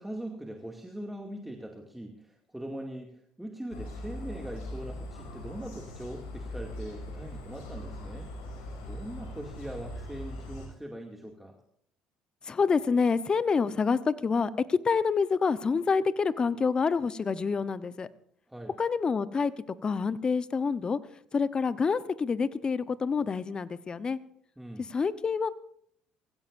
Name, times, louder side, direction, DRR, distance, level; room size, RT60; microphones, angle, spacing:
voice 1, 0.0-11.6 18.5-18.7 24.6-24.9, right 1 dB, 5° right, 1 dB, 2.4 m, -41 dB
sound 1, 3.7-10.7, left 1 dB, 75° left, 5.9 m, -41 dB
voice 2, 12.5-18.1 18.8-19.5 19.8-21.0 21.3-24.2 24.9-25.5, left 5 dB, 35° left, 15 dB, 0.9 m, -27 dB
24.0 x 16.0 x 2.6 m, 0.65 s
hypercardioid pair, 65°, 3 cm